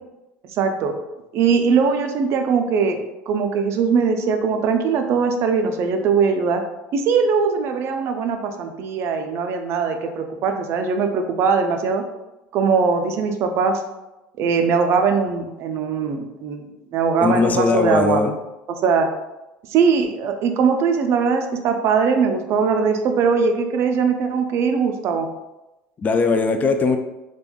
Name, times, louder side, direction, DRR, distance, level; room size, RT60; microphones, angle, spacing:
voice 1, 0.5-0.9 1.3-3.0 3.3-6.6 6.9-12.0 12.5-13.8 14.4-16.6 16.9-18.2 18.8-19.1 19.7-25.3, right 5 dB, 50° right, 6 dB, 0.4 m, -20 dB
voice 2, 17.2-18.3 26.0-27.0, left 4 dB, 30° left, 6 dB, 0.3 m, -19 dB
3.3 x 2.2 x 2.2 m, 1.0 s
hypercardioid pair, 90°, 5 cm